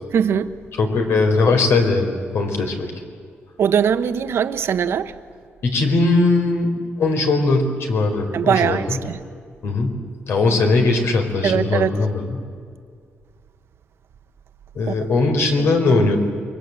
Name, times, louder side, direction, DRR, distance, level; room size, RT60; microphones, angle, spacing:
voice 1, 0.1-0.5 3.6-5.1 8.3-9.2 11.4-12.0 14.9-15.0 15.5-15.7, right 8 dB, 70° right, 1.1 m, -21 dB
voice 2, 0.8-2.9 5.6-6.7 7.0-9.0 9.6-9.9 10.3-12.3 14.7-16.2, left 3 dB, 70° left, 4.6 m, -19 dB
28.0 x 23.0 x 8.2 m
wide cardioid pair, 140°, 4 cm